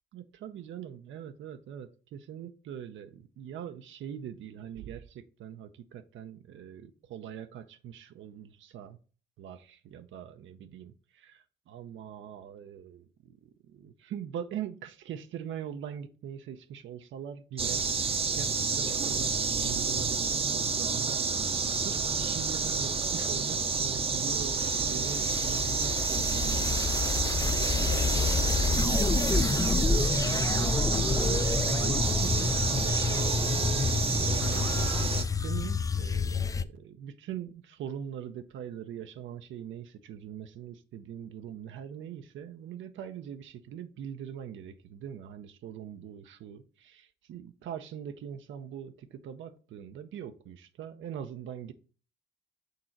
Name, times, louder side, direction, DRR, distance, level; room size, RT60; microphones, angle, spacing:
voice 1, 0.1-9.0 9.4-26.9 27.7-51.7, right 9 dB, 75° right, 0.7 m, -42 dB
sound 1, 17.6-35.2, right 5 dB, 30° right, 0.7 m, -29 dB
sound 2, 23.8-36.6, left 4 dB, 15° left, 0.4 m, -29 dB
6.6 x 3.8 x 4.5 m
cardioid pair, 90°, 20 cm